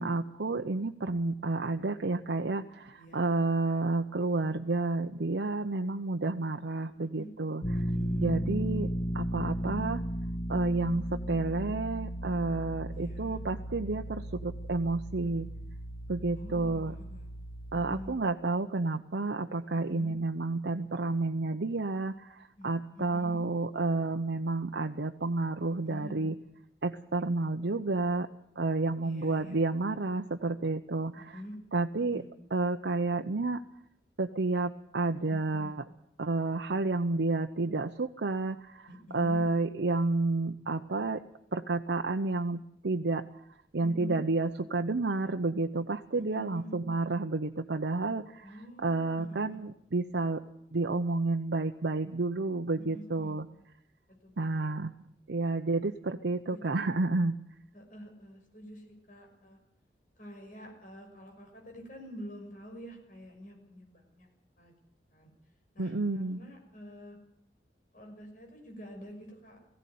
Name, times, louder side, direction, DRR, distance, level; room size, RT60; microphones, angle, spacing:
voice 1, 0.0-7.6 8.2-8.9 9.1-10.0 10.5-15.5 16.1-16.9 17.7-26.4 26.8-28.3 28.6-31.4 31.7-32.2 32.5-33.6 34.2-35.8 36.2-38.9 39.1-41.2 41.5-43.2 43.7-50.4 50.7-53.5 54.4-54.9 55.3-57.4 65.8-66.4, right 3 dB, 85° right, 4 dB, 0.8 m, -30 dB
sound 1, 7.6-18.1, equal, 30° left, 1.2 m, -35 dB
voice 2, 7.7-8.3 9.8-9.9 12.9-13.4 15.2-15.4 16.3-17.3 17.7-18.2 19.7-20.2 22.6-23.4 25.8-26.3 29.0-29.6 31.2-31.5 32.1-32.3 35.1-35.7 38.9-39.4 43.8-44.2 46.2-46.7 48.4-49.6 52.8-53.3 54.1-54.9 56.5-56.8 57.7-59.6 60.2-64.3 64.6-64.7 65.1-65.3 65.7-67.2 67.9-69.6, equal, 50° left, 1 dB, 6.2 m, -47 dB
17.5 x 16.0 x 9.4 m, 0.74 s
head